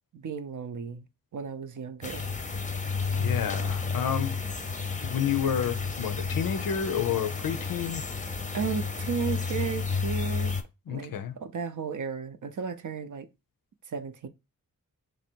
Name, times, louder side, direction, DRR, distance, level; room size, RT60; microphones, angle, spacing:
voice 1, 0.1-2.3 8.5-10.5 10.9-13.3 13.9-14.3, right 6 dB, 60° right, 0.6 m, -34 dB
sound 1, 2.0-10.6, left 4 dB, 20° left, 0.6 m, -31 dB
voice 2, 3.2-4.4 5.0-8.1 10.9-11.4, left 8 dB, 75° left, 0.5 m, -30 dB
3.1 x 2.6 x 4.3 m
cardioid pair, 45°, 34 cm